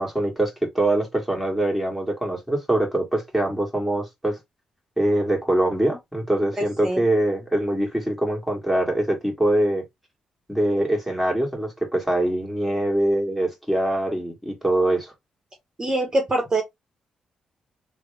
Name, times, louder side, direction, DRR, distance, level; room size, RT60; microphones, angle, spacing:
voice 1, 0.0-4.4 5.0-9.8 10.5-15.1, right 1 dB, ahead, 2.0 m, -23 dB
voice 2, 6.6-7.0 15.8-16.6, right 2 dB, 30° right, 1.2 m, -24 dB
3.3 x 2.3 x 3.5 m
supercardioid pair, 65°, 2 cm